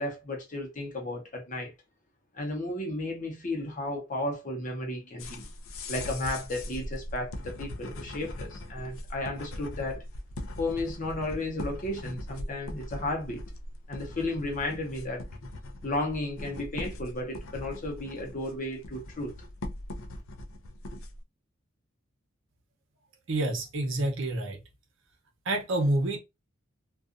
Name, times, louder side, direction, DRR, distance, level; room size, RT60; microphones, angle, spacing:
voice 1, 0.0-1.7 2.3-5.5 5.9-10.0 10.6-13.4 13.9-15.2 15.8-19.3, left 1 dB, 40° left, 0.8 m, -33 dB
sound 1, 5.2-21.2, left 1 dB, 75° left, 0.5 m, -40 dB
voice 2, 23.3-24.6 25.5-26.2, right 1 dB, 65° right, 0.8 m, -28 dB
2.4 x 2.3 x 2.4 m
head